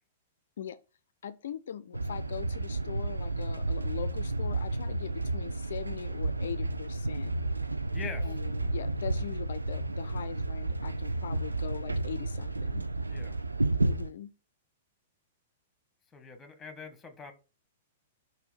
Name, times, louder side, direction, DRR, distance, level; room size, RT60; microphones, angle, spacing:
voice 1, 1.2-7.3 8.2-12.8 13.8-14.3, left 8 dB, 65° left, 0.3 m, -41 dB
sound 1, 1.9-14.1, right 2 dB, 90° right, 0.5 m, -32 dB
voice 2, 7.9-8.3 13.1-13.4 16.1-17.3, left 4 dB, 15° left, 1.3 m, -43 dB
5.4 x 4.4 x 4.1 m
figure-of-eight pair, 105°, 0 cm